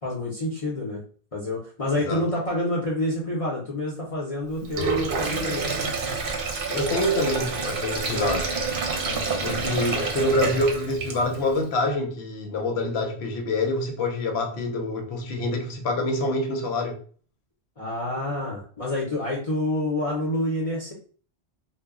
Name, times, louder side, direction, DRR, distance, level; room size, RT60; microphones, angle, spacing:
voice 1, 0.0-1.0 1.3-5.9 9.0-9.6 17.8-20.9, left 1 dB, 40° left, 0.7 m, -28 dB
Sink (filling or washing), 4.6-11.5, right 4 dB, 60° right, 0.7 m, -28 dB
voice 2, 6.7-8.5 9.4-17.0, left 2 dB, 90° left, 0.9 m, -26 dB
2.1 x 2.0 x 3.5 m
omnidirectional pair, 1.1 m